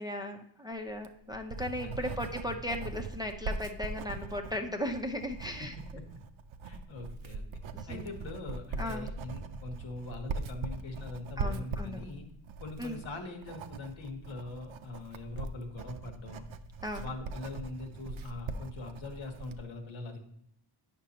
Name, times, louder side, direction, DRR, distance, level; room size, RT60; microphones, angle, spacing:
voice 1, 0.0-5.7 7.7-8.1 8.8-9.1 11.4-12.0 12.8-13.0 16.8-17.1, left 1 dB, 10° right, 3 dB, 0.5 m, -37 dB
Writing, 0.9-19.6, right 4 dB, 80° right, 0.6 m, -41 dB
voice 2, 1.8-2.2 2.4-2.8 5.6-6.1 6.6-7.4 7.9-12.3 12.6-16.5 17.0-20.2, left 2 dB, 75° left, 3 dB, 1.3 m, -42 dB
8.9 x 5.9 x 2.9 m, 0.75 s
wide cardioid pair, 120°, 47 cm